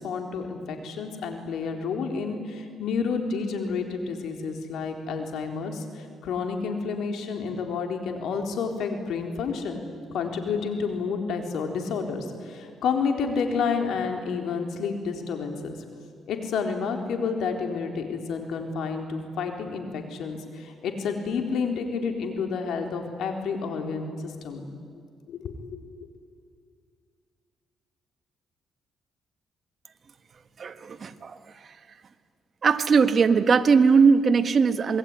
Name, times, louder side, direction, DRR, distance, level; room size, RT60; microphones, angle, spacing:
voice 1, 0.0-9.9 10.1-15.7 16.3-24.7 25.3-26.1, left 5 dB, 75° left, 4 dB, 4.0 m, -30 dB
voice 2, 30.6-31.4 32.6-35.0, right 5 dB, 45° right, 10 dB, 1.6 m, -20 dB
27.0 x 21.0 x 9.8 m, 2.1 s
cardioid pair, 90°, 0 cm